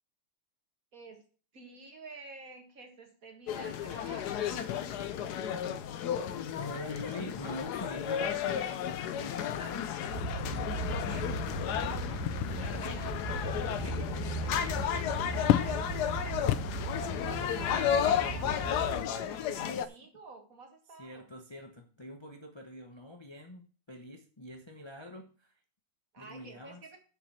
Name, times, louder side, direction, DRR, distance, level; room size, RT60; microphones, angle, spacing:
voice 1, 0.9-1.2 1.5-4.9 10.7-11.6 12.1-16.6 17.2-21.3 26.1-27.0, right 3 dB, 40° right, 4 dB, 2.1 m, -50 dB
sound 1, 3.5-19.9, left 9 dB, 70° left, 1.0 m, -33 dB
voice 2, 6.6-8.9 9.2-10.5 17.7-18.1 19.8-19.9 21.0-25.5 26.2-26.8, left 1 dB, 35° left, 4 dB, 0.4 m, -45 dB
sound 2, 8.6-19.1, left 14 dB, 90° left, 1.5 m, -37 dB
sound 3, 10.1-19.0, right 1 dB, 15° left, 2.4 m, -37 dB
7.2 x 6.0 x 7.3 m, 0.40 s
omnidirectional pair, 2.4 m